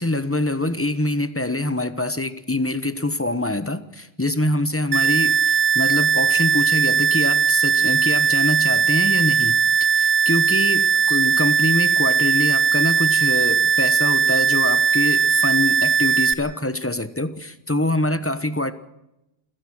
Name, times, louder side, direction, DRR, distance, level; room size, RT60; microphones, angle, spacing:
voice 1, 0.0-9.6 10.0-18.7, left 1 dB, 15° left, 12 dB, 1.1 m, -24 dB
sound 1, 4.9-16.3, right 6 dB, 65° right, 1.5 m, -19 dB
28.5 x 17.0 x 6.2 m, 0.88 s
omnidirectional pair, 1.1 m